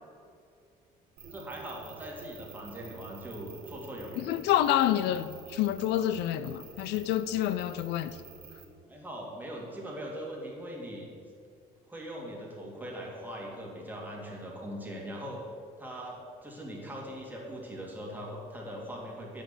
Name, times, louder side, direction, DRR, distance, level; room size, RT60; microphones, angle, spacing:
voice 1, 1.2-4.3 8.9-11.1 11.9-15.4 15.8-19.4, equal, 10° right, 2.7 m, -41 dB
sound 1, 1.2-8.6, right 5 dB, 65° right, 1.5 m, -49 dB
voice 2, 4.2-8.2, left 12 dB, 85° left, 0.5 m, -28 dB
8.1 x 6.5 x 8.1 m
cardioid pair, 110°, 17 cm